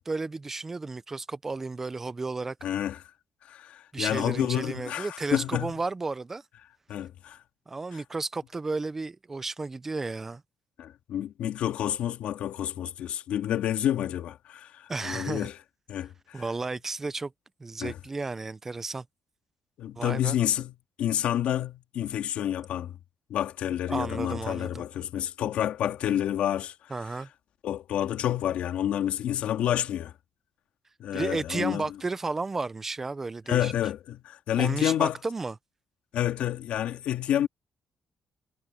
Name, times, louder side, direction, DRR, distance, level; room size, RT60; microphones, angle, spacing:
voice 1, 0.0-2.6 3.9-6.4 7.7-10.4 14.9-15.5 16.3-17.3 17.6-19.0 20.0-20.4 23.9-24.8 26.9-27.3 31.1-33.7 34.6-35.6, right 3 dB, 15° right, 0.5 m, -33 dB
voice 2, 2.6-3.0 3.4-5.7 6.9-7.4 7.9-8.0 10.8-15.6 15.9-16.4 17.8-18.0 19.8-20.7 21.0-22.9 23.3-26.7 27.6-30.1 31.0-31.8 33.5-35.2 36.1-37.5, left 11 dB, 70° left, 2.4 m, -29 dB
cardioid pair, 170°, 2 cm